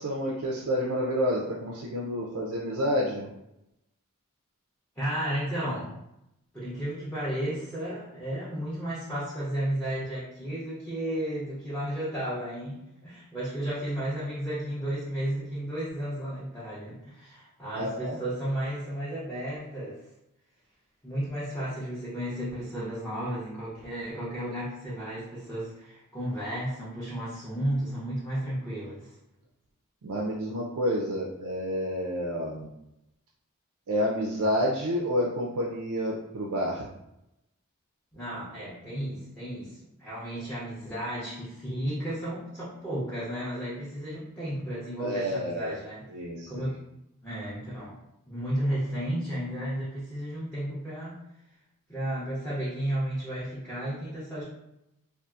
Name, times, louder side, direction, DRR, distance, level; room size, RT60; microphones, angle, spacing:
voice 1, 0.0-3.3 17.7-18.2 30.0-32.7 33.9-36.9 45.0-45.8 46.1-46.7, equal, 80° right, -3 dB, 0.4 m, -29 dB
voice 2, 5.0-6.0 6.5-20.0 21.0-29.1 38.1-46.0 46.5-46.8 47.2-48.0 48.3-51.2 51.9-54.4, right 1 dB, 10° left, -9 dB, 0.6 m, -33 dB
2.7 x 2.4 x 2.3 m, 0.85 s
head